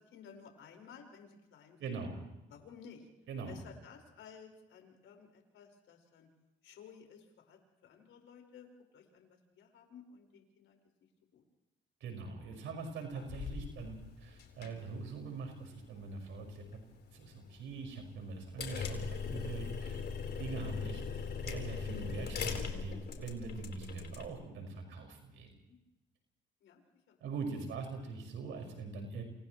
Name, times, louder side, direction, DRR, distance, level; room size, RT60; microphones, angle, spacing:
voice 1, 0.0-2.0 2.5-3.1 3.5-6.3 6.6-10.8 11.3-11.4 13.0-13.1 25.7-25.8 26.6-26.8 27.1-27.2, left 6 dB, 80° left, 3 dB, 4.9 m, -55 dB
voice 2, 1.8-2.1 3.3-3.6 12.0-16.8 17.1-20.0 20.4-25.6 27.2-29.2, right 4 dB, 85° right, 3 dB, 5.4 m, -43 dB
sound 1, 13.1-24.3, left 6 dB, 55° left, 4.2 m, -41 dB
29.5 x 28.5 x 3.1 m, 0.94 s
cardioid pair, 90°, 20 cm